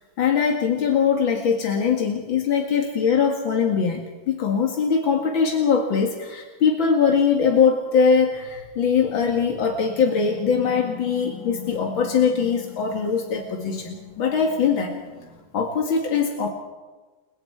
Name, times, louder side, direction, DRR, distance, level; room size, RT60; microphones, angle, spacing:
voice 1, 0.2-15.0 15.5-16.5, left 6 dB, 90° left, 1 dB, 2.8 m, -21 dB
sound 1, 9.7-15.4, left 7 dB, 5° right, 6.3 m, -41 dB
29.5 x 23.5 x 4.8 m, 1.3 s
omnidirectional pair, 2.1 m